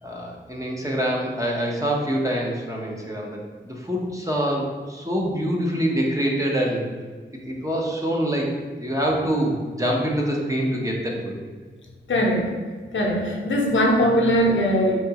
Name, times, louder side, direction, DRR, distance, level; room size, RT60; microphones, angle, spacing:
voice 1, 0.0-6.9 7.4-8.5 8.8-11.3 13.1-13.3, equal, 15° right, -2 dB, 0.9 m, -25 dB
voice 2, 12.1-12.5 12.9-15.0, equal, 75° left, -1 dB, 0.7 m, -20 dB
3.7 x 3.5 x 2.9 m, 1.5 s
cardioid pair, 50°, 20 cm